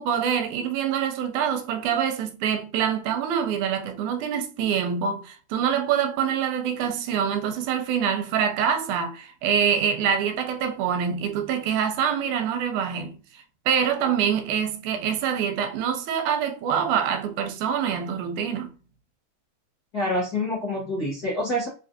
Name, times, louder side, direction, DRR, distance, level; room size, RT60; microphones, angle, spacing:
voice 1, 0.0-13.2 13.7-18.7, right 8 dB, 85° right, 2.0 m, -25 dB
voice 2, 19.9-21.7, left 1 dB, 55° left, 1.0 m, -26 dB
4.8 x 2.4 x 2.8 m
omnidirectional pair, 3.5 m